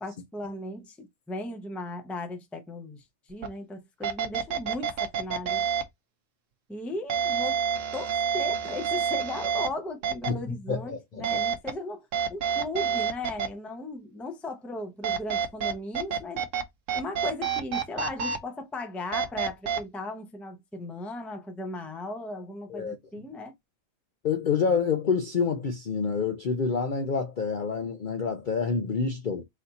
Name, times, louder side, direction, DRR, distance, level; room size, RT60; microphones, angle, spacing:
voice 1, 0.0-5.7 6.7-7.6 7.9-16.4 16.9-23.5, left 2 dB, ahead, 0.5 m, -37 dB
sound 1, 3.4-3.5 4.0-5.8 7.1-9.7 10.0-10.3 11.2-11.7 12.1-13.5 15.0-16.6 16.9-18.4 19.1-19.8, right 7 dB, 65° right, 1.1 m, -28 dB
voice 2, 10.3-11.4 22.7-23.0 24.2-29.4, left 5 dB, 55° left, 0.6 m, -28 dB
4.1 x 2.7 x 4.0 m
omnidirectional pair, 1.5 m